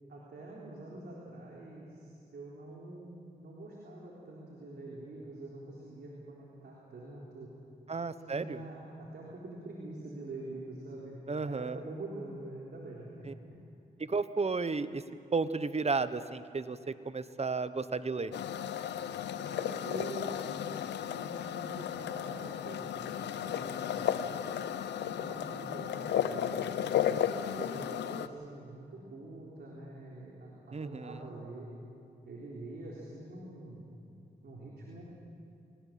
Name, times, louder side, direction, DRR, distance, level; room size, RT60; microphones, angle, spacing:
voice 1, 0.1-7.5 8.3-13.6 19.3-20.3 21.0-24.3 24.9-27.0 27.5-31.7 32.2-33.8 34.4-35.0, right 2 dB, 70° right, -4 dB, 3.9 m, -45 dB
voice 2, 7.9-8.6 11.3-11.8 13.3-13.4 14.0-15.0 15.3-18.3 30.7-31.2, right 4 dB, 40° right, 13 dB, 1.1 m, -33 dB
sound 1, 18.3-28.3, left 9 dB, 90° left, 0.7 m, -34 dB
23.0 x 19.0 x 7.6 m, 2.6 s
supercardioid pair, 50°, 17 cm